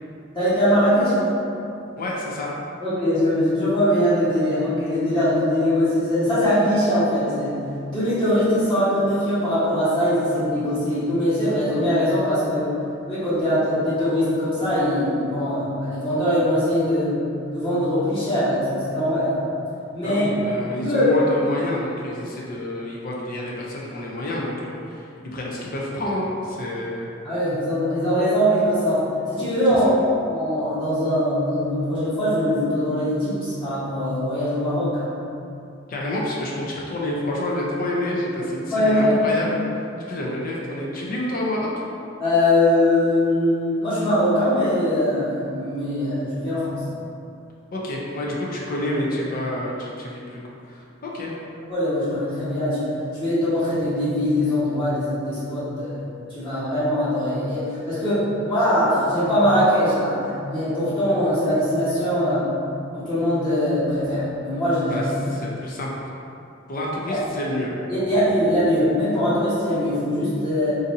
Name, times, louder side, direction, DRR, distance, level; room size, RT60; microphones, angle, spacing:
voice 1, 0.3-1.3 2.8-7.5 7.9-12.7 13.1-17.2 17.5-19.4 19.9-20.2 20.7-21.1 27.2-29.9 30.3-35.1 38.7-39.2 42.2-46.8 51.7-52.9 53.2-56.1 56.3-62.4 62.9-65.1 67.9-70.8, equal, 25° left, -14 dB, 1.1 m, -21 dB
voice 2, 2.0-2.5 20.0-27.1 35.9-39.6 40.1-41.7 47.7-50.4 50.7-51.3 64.9-66.1 66.7-68.2, left 1 dB, 45° left, -3 dB, 0.5 m, -28 dB
2.6 x 2.6 x 4.0 m, 2.7 s
head